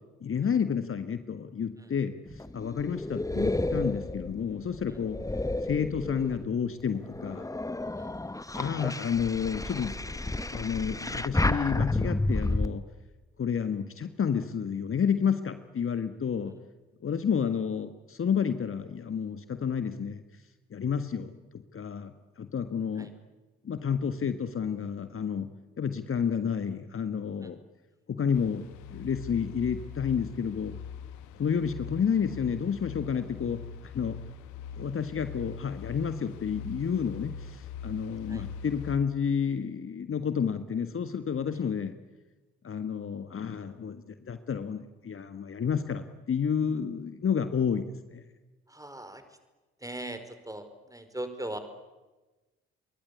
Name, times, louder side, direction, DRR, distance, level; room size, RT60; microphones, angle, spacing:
voice 1, 0.2-5.2 5.6-7.5 8.5-12.8 13.4-16.6 17.0-20.2 20.7-23.1 23.6-25.5 25.8-27.6 28.1-30.7 31.4-34.2 34.7-42.0 42.6-47.8 48.1-48.2, left 7 dB, 40° left, 10 dB, 1.7 m, -30 dB
sound 1, 2.3-6.5 7.0-12.7, left 2 dB, 10° left, 1.2 m, -31 dB
sound 2, 28.3-39.0, left 6 dB, 70° left, 1.8 m, -42 dB
voice 2, 48.7-49.4 49.8-51.6, right 1 dB, 10° right, 9 dB, 5.2 m, -40 dB
28.5 x 23.0 x 8.5 m, 1.2 s
figure-of-eight pair, 40°, 32 cm